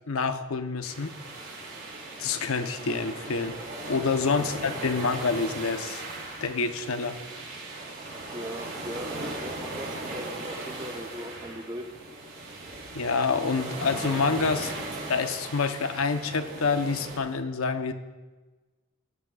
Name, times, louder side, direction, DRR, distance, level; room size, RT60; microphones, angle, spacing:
voice 1, 0.1-1.1 2.2-3.6 3.9-6.0 6.4-7.2 12.9-14.7 15.1-17.9, left 4 dB, 75° left, 8 dB, 0.8 m, -27 dB
sound 1, 0.8-17.2, right 2 dB, 65° right, 3.7 m, -38 dB
voice 2, 8.3-11.9, equal, 20° right, 5 dB, 0.9 m, -39 dB
17.5 x 12.5 x 2.4 m, 1.2 s
head